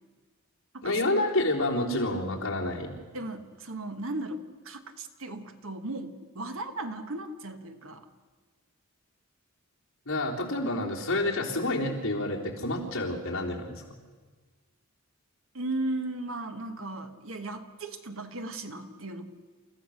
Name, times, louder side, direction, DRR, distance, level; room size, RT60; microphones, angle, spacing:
voice 1, 0.8-2.9 10.1-13.8, left 1 dB, 65° left, -3 dB, 3.6 m, -29 dB
voice 2, 3.1-8.1 15.5-19.3, right 2 dB, 65° right, 7 dB, 1.5 m, -36 dB
29.0 x 15.0 x 6.5 m, 1.4 s
head